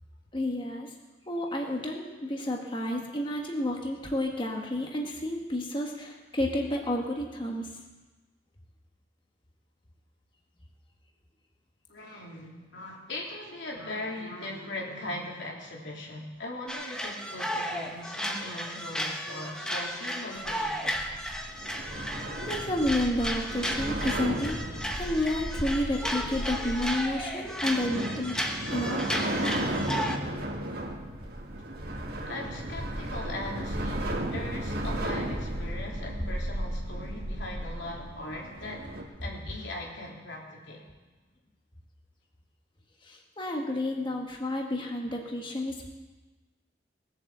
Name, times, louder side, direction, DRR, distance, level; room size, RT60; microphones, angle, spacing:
voice 1, 0.3-0.9 1.3-7.7 22.4-24.5 24.9-28.4 28.7-29.0 43.0-45.9, left 1 dB, 30° left, 0 dB, 1.4 m, -30 dB
voice 2, 11.9-21.2 32.3-38.9 39.2-40.8, left 1 dB, 90° left, -2 dB, 3.2 m, -39 dB
sound 1, 16.7-30.2, equal, 5° left, 1.1 m, -34 dB
sound 2, 20.4-39.0, right 1 dB, 60° right, 2.1 m, -34 dB
19.0 x 7.7 x 7.4 m, 1.2 s
head